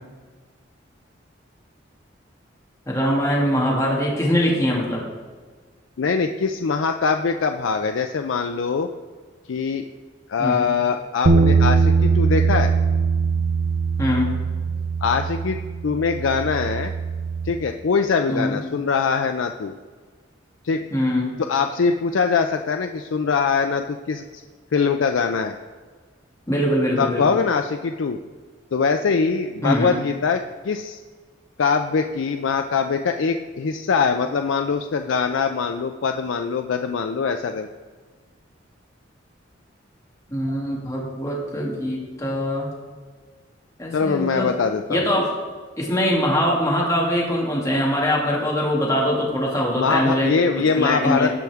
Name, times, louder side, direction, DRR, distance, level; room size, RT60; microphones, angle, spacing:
voice 1, 2.9-5.0 10.4-10.6 14.0-14.3 18.3-18.6 20.9-21.3 26.5-27.4 29.6-30.0 40.3-42.7 43.8-44.5 44.9-45.3 45.8-50.4 50.7-51.3, equal, 15° left, -4 dB, 2.1 m, -22 dB
voice 2, 6.0-8.9 9.5-9.9 10.3-12.7 15.0-15.6 15.8-16.9 17.4-19.7 20.6-20.8 21.4-24.4 24.7-25.5 27.0-28.2 28.7-31.0 31.6-37.7 43.9-45.1 49.8-51.3, left 5 dB, 85° left, 6 dB, 0.4 m, -22 dB
sound 1, 11.3-17.5, right 5 dB, 80° right, 0.8 m, -21 dB
17.0 x 5.8 x 3.5 m, 1.4 s
head